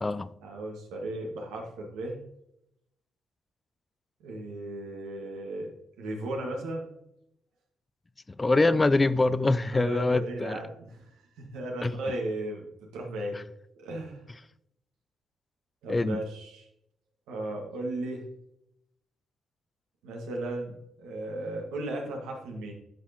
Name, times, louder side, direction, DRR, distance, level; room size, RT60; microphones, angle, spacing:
voice 1, 0.4-2.2 4.2-5.7 6.0-6.9 9.7-11.1 11.4-12.7 12.9-13.4 13.8-14.2 15.8-16.7 17.3-18.3 20.0-22.7, right 1 dB, 90° right, 1.7 m, -35 dB
voice 2, 8.4-10.6 11.8-12.0 15.9-16.2, left 2 dB, 25° left, 0.4 m, -24 dB
9.9 x 5.8 x 2.9 m
supercardioid pair, 65°, 0 cm